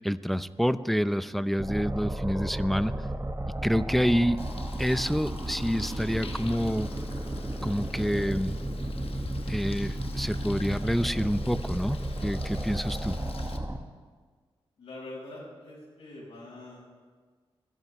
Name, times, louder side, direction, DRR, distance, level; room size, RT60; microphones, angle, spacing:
voice 1, 0.0-2.9 3.6-4.4 4.8-6.9 7.6-8.6 9.5-13.2, equal, ahead, 13 dB, 0.6 m, -27 dB
sound 1, 1.6-13.8, right 1 dB, 25° right, 1.1 m, -33 dB
Bird, 4.4-13.6, left 4 dB, 70° left, 1.0 m, -45 dB
voice 2, 14.8-16.8, left 2 dB, 90° left, -9 dB, 4.8 m, -44 dB
27.0 x 11.0 x 3.2 m, 1.5 s
cardioid pair, 50°, 10 cm